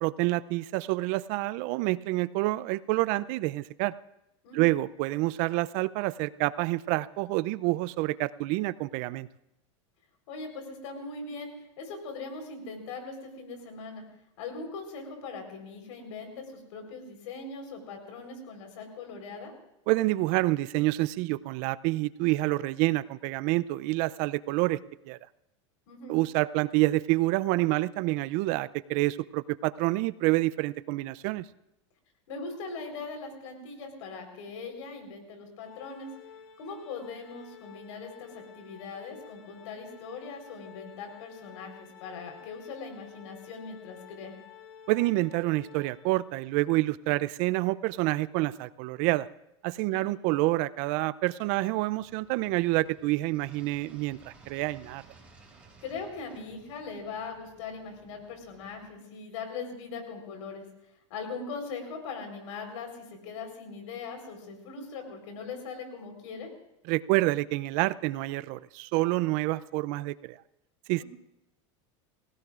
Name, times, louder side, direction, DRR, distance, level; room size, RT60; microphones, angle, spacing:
voice 1, 0.0-3.9 4.5-9.3 19.9-24.8 25.1-25.2 26.1-31.4 44.9-49.3 49.6-55.0 66.9-70.4 70.9-71.0, right 19 dB, 55° right, 18 dB, 0.5 m, -28 dB
voice 2, 4.4-4.7 10.3-14.0 14.4-19.5 25.9-26.2 32.3-36.1 36.6-44.3 49.9-50.0 55.8-60.6 61.1-66.5 71.0-71.1, left 4 dB, 75° left, 4 dB, 4.1 m, -40 dB
Organ, 35.6-46.5, left 8 dB, 55° left, 2.4 m, -51 dB
sound 1, 52.0-58.9, right 4 dB, 10° right, 6.5 m, -57 dB
30.0 x 16.5 x 2.5 m, 0.86 s
supercardioid pair, 110°, 16 cm